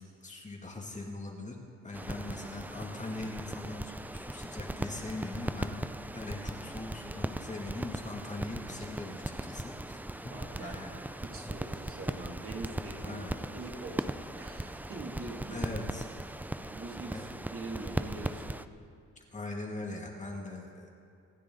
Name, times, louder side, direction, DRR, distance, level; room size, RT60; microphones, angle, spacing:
voice 1, 0.0-1.6 1.8-5.8 6.1-10.9 11.3-11.5 13.0-13.3 15.5-16.1 17.1-17.3 19.3-20.9, left 2 dB, 25° left, 0 dB, 2.4 m, -41 dB
sound 1, 1.9-18.6, right 1 dB, 5° right, 0.4 m, -39 dB
voice 2, 10.3-10.8 11.2-13.2 13.5-15.7 16.6-18.6, right 3 dB, 50° right, -1 dB, 2.6 m, -43 dB
25.5 x 10.0 x 4.0 m, 2.6 s
cardioid pair, 90°, 30 cm